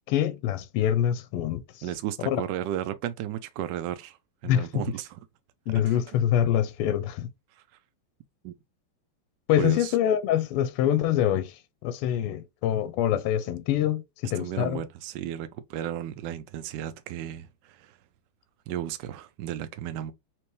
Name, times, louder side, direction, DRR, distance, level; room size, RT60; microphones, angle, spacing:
voice 1, 0.1-1.6 2.3-2.4 4.5-4.7 5.7-7.3 9.5-14.8, left 11 dB, 90° left, 1.5 m, -25 dB
voice 2, 1.8-4.2 4.4-5.2 5.9-6.0 7.5-7.6 8.4-8.5 9.6-10.0 14.4-18.0 18.7-20.1, right 11 dB, 80° right, 1.0 m, -34 dB
4.5 x 3.0 x 3.1 m
omnidirectional pair, 2.4 m